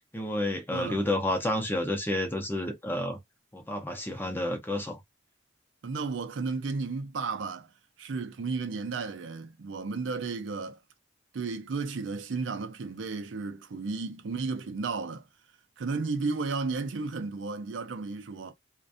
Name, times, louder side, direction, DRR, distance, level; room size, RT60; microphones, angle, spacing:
voice 1, 0.0-3.2 3.5-5.0, left 1 dB, 10° left, 0.6 m, -30 dB
voice 2, 0.7-1.0 5.8-7.7 8.0-10.8 11.3-15.2 15.8-18.5, right 4 dB, 70° right, 0.5 m, -33 dB
2.5 x 2.2 x 2.5 m
head